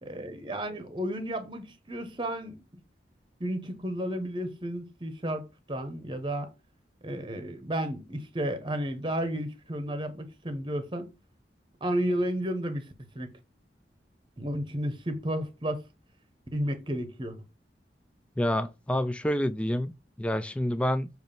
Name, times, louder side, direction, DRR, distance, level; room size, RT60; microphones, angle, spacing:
voice 1, 0.0-2.6 3.4-6.5 7.0-11.1 11.8-12.9 13.1-13.3 14.4-15.8 16.5-17.3, equal, 25° right, 0.9 m, -32 dB
voice 2, 18.4-19.9 20.2-21.1, left 1 dB, 5° left, 0.3 m, -28 dB
6.9 x 3.1 x 5.3 m
head